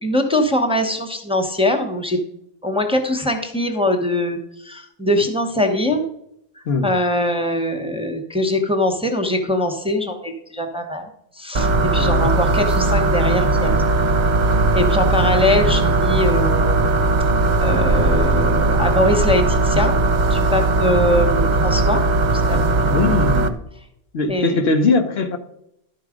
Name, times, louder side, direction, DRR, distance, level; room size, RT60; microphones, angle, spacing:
voice 1, 0.0-2.2 2.6-6.1 6.6-11.1 11.3-13.7 14.7-16.8 17.6-20.0 20.3-22.7 24.3-24.6, left 1 dB, 5° right, 0.9 m, -22 dB
voice 2, 6.7-7.0 12.0-12.3 22.8-23.6 24.1-25.4, left 3 dB, 75° left, 1.1 m, -20 dB
sound 1, 11.5-23.5, right 3 dB, 50° right, 0.8 m, -18 dB
12.0 x 4.7 x 5.0 m
omnidirectional pair, 1.1 m